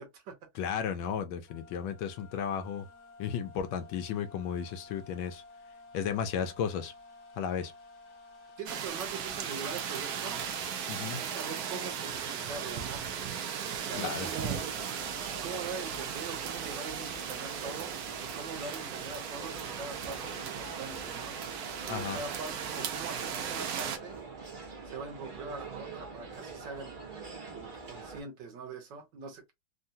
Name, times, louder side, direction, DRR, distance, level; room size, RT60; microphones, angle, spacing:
voice 1, 0.0-0.7 8.6-10.4 11.2-13.0 13.8-14.6 15.4-21.3 21.9-24.2 24.9-27.0 27.5-29.5, right 4 dB, 65° right, 1.4 m, -43 dB
voice 2, 0.6-2.9 3.2-5.4 5.9-6.9 7.4-7.7 10.9-11.2 14.0-14.3 21.9-22.2, left 8 dB, 75° left, 1.3 m, -34 dB
sound 1, 1.5-8.9, left 3 dB, 50° left, 1.1 m, -53 dB
sound 2, 8.7-24.0, right 8 dB, 80° right, 0.8 m, -37 dB
sound 3, 14.2-28.2, right 4 dB, 45° right, 0.6 m, -44 dB
3.7 x 2.2 x 2.6 m
omnidirectional pair, 2.3 m